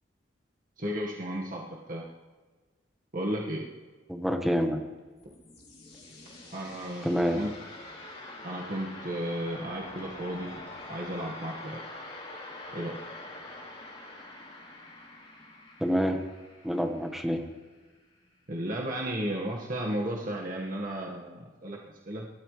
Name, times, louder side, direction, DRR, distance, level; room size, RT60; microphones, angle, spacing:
voice 1, 0.8-1.6 1.9-2.0 3.1-3.7 6.5-7.5 8.4-10.6 10.9-11.8 12.7-12.9 18.5-21.8 22.1-22.3, right 1 dB, 50° right, -2 dB, 1.7 m, -34 dB
voice 2, 4.1-4.8 7.0-7.4 15.8-16.2 16.6-17.4, equal, ahead, 4 dB, 1.3 m, -27 dB
sound 1, 5.2-17.8, left 2 dB, 35° left, 3.3 m, -45 dB
26.5 x 13.5 x 3.3 m, 1.3 s
head